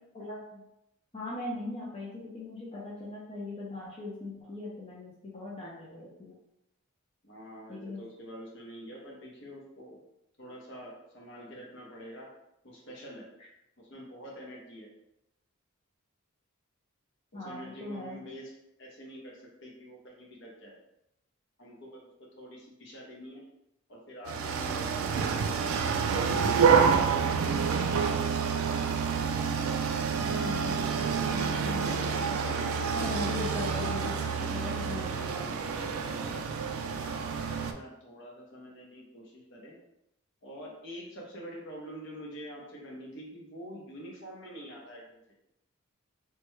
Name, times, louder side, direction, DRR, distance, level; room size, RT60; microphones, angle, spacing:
voice 1, 0.1-0.6 1.1-6.3 7.7-8.0 17.3-18.2 30.1-32.4 32.9-35.5 35.8-36.5, left 2 dB, 25° left, -6 dB, 0.5 m, -40 dB
voice 2, 7.2-10.0 10.4-12.3 12.6-13.3 13.8-14.9 17.3-18.5 18.8-19.3 19.6-20.7 21.6-22.0 22.3-23.4 23.9-24.9 37.0-39.8 40.4-45.2, equal, 60° left, -2 dB, 0.8 m, -46 dB
sound 1, 24.3-37.7, right 6 dB, 75° right, 0.3 m, -28 dB
3.3 x 2.1 x 3.1 m, 0.84 s
head